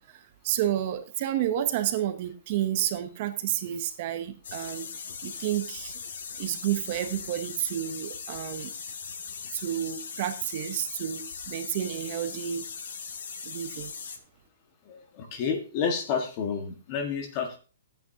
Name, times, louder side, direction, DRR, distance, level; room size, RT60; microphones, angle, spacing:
voice 1, 0.1-4.9 5.2-6.0 6.4-8.7 9.5-12.7 13.4-13.9, right 11 dB, 35° right, 9 dB, 0.7 m, -30 dB
sound 1, 4.4-14.2, left 6 dB, 70° left, 1.6 m, -39 dB
voice 2, 14.9-17.6, left 6 dB, 30° left, 5 dB, 1.5 m, -30 dB
13.0 x 9.0 x 2.7 m, 0.35 s
hypercardioid pair, 170°, 0 cm